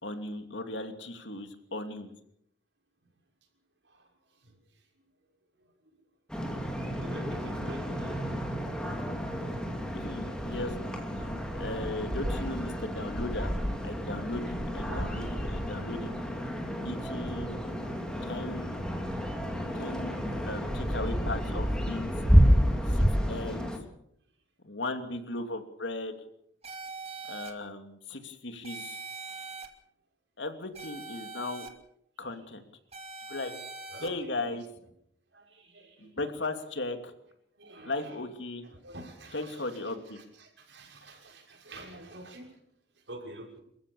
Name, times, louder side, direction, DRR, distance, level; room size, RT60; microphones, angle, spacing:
voice 1, 0.0-2.1 9.9-13.5 13.8-16.1 16.8-17.7 18.2-18.8 19.7-20.2 20.5-22.1 22.9-23.7 24.6-26.1 27.2-29.0 30.4-31.7 32.2-32.6 33.3-33.5 34.0-34.6 36.0-37.1 37.8-38.6 39.3-40.2, left 2 dB, 80° left, 7 dB, 2.8 m, -37 dB
voice 2, 3.8-4.9 5.6-5.7 6.7-8.4 10.9-11.1 14.9-15.3 32.2-32.4 33.9-34.6 35.3-36.3 37.5-38.3 38.6-42.6 42.9-43.6, right 1 dB, 75° right, 2 dB, 6.4 m, -49 dB
sound 1, 6.3-23.8, equal, 5° left, 3.2 m, -30 dB
sound 2, 26.6-27.5 28.6-29.7 30.7-31.7 32.9-34.1, right 3 dB, 35° right, 2.5 m, -42 dB
28.5 x 15.0 x 7.1 m, 0.73 s
head